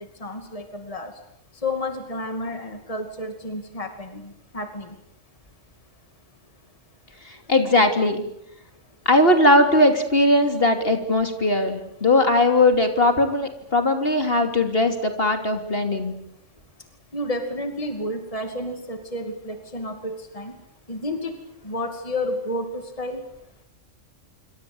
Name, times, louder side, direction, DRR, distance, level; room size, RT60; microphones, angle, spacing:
voice 1, 0.2-1.1 1.6-4.9 17.1-20.5 20.9-21.4 21.6-23.2, left 1 dB, 30° left, 6 dB, 2.7 m, -31 dB
voice 2, 7.2-8.2 9.0-16.1, left 1 dB, 50° left, 6 dB, 3.3 m, -19 dB
27.0 x 25.0 x 7.9 m, 0.78 s
omnidirectional pair, 1.3 m